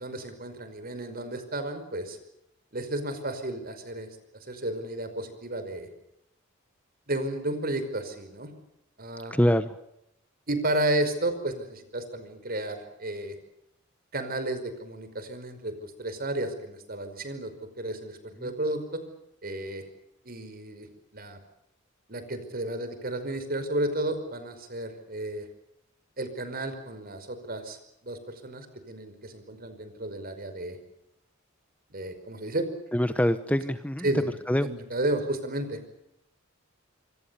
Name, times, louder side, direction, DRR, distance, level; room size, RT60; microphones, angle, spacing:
voice 1, 0.0-2.2 2.7-4.1 4.5-5.9 7.1-8.5 9.0-9.3 10.5-13.4 14.1-19.0 19.4-19.8 20.3-20.9 21.1-21.4 22.1-25.5 26.2-30.8 31.9-32.7 34.0-34.3 34.6-35.8, right 1 dB, 50° right, 10 dB, 5.3 m, -32 dB
voice 2, 9.3-9.8 18.4-18.5 32.9-34.1 34.5-34.7, equal, 5° left, 11 dB, 1.0 m, -25 dB
26.5 x 26.0 x 7.1 m, 0.80 s
head